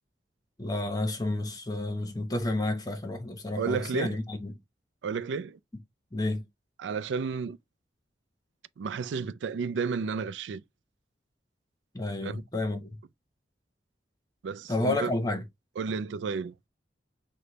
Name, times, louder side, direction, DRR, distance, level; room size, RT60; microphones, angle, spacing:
voice 1, 0.6-4.6 6.1-6.5 11.9-13.0 14.7-15.4, left 2 dB, 20° left, 0.8 m, -30 dB
voice 2, 3.6-4.2 5.0-5.6 6.8-7.6 8.8-10.6 12.2-12.4 14.4-15.1 15.8-16.5, right 5 dB, 85° right, 0.4 m, -32 dB
5.0 x 2.2 x 3.9 m
head